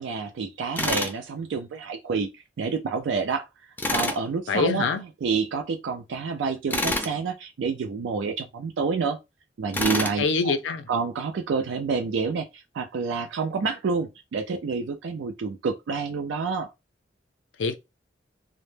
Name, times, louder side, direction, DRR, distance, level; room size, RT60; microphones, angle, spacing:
voice 1, 0.0-3.5 3.9-4.9 5.2-9.2 9.6-10.5 10.9-16.7, right 5 dB, 85° right, 0.3 m, -28 dB
Tools, 0.8-1.2 3.8-4.2 6.7-7.1 9.7-10.2, left 2 dB, 10° left, 0.4 m, -26 dB
voice 2, 4.5-5.0 10.2-10.9 17.6-17.7, left 4 dB, 90° left, 0.4 m, -24 dB
2.0 x 2.0 x 3.1 m
head